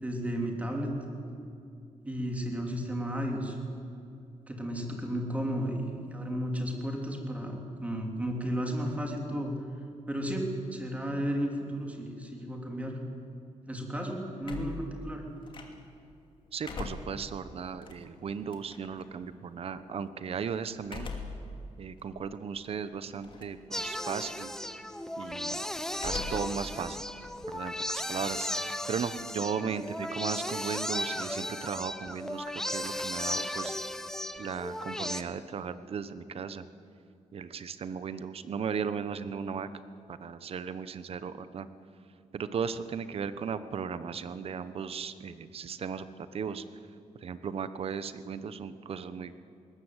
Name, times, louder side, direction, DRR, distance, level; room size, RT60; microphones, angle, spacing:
voice 1, 0.0-0.9 2.0-3.6 4.5-9.5 10.1-10.4 10.7-13.0 13.7-15.3, equal, 10° right, 1 dB, 3.5 m, -33 dB
sound 1, 14.4-16.0 16.4-19.0 20.8-21.5 22.0-22.1 23.2-23.6 23.9-24.4 25.9-26.6 26.9-28.3, left 4 dB, 45° left, 2.6 m, -41 dB
voice 2, 16.5-21.2 21.8-24.5 25.2-25.7 26.0-27.1 27.5-28.5 28.9-33.7 34.4-36.6 37.3-39.7 40.1-41.7 42.3-46.6 47.2-49.3, right 6 dB, 55° right, 13 dB, 1.0 m, -36 dB
sound 2, 23.7-35.2, left 1 dB, 5° left, 0.9 m, -35 dB
20.5 x 19.5 x 8.1 m, 2.6 s
wide cardioid pair, 135°, 12 cm